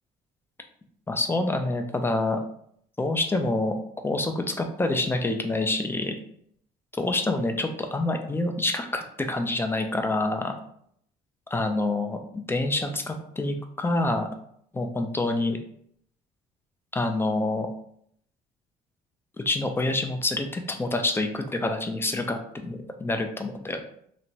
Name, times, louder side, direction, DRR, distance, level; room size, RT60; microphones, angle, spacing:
voice 1, 1.1-2.4 3.0-3.7 4.0-6.1 7.0-9.0 9.3-10.5 11.5-12.2 12.5-14.3 14.7-15.6 16.9-17.7 19.5-23.8, left 2 dB, 15° left, 5 dB, 0.3 m, -27 dB
2.9 x 2.2 x 2.7 m, 0.66 s
cardioid pair, 110°, 17 cm